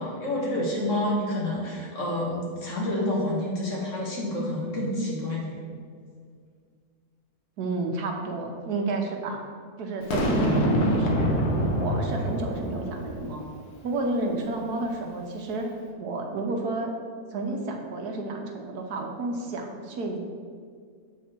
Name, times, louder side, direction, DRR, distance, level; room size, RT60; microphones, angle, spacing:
voice 1, 0.0-5.6, left 1 dB, 55° left, -3 dB, 1.8 m, -28 dB
voice 2, 7.6-9.4 9.8-13.4 13.8-15.7 16.0-16.9 17.3-20.2, right 2 dB, 85° right, 2 dB, 1.4 m, -31 dB
Boom, 10.1-13.4, equal, 90° left, 1.5 m, -25 dB
7.2 x 4.6 x 4.3 m, 2.1 s
omnidirectional pair, 1.6 m